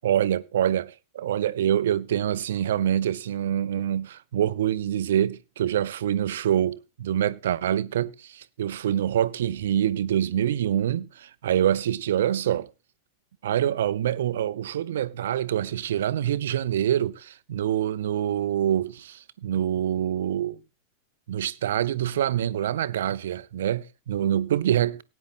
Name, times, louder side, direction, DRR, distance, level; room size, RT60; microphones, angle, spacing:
voice 1, 0.0-12.7 13.4-20.6 21.3-25.0, right 10 dB, 60° right, 0.7 m, -25 dB
18.0 x 9.6 x 2.5 m
figure-of-eight pair, 90°, 0 cm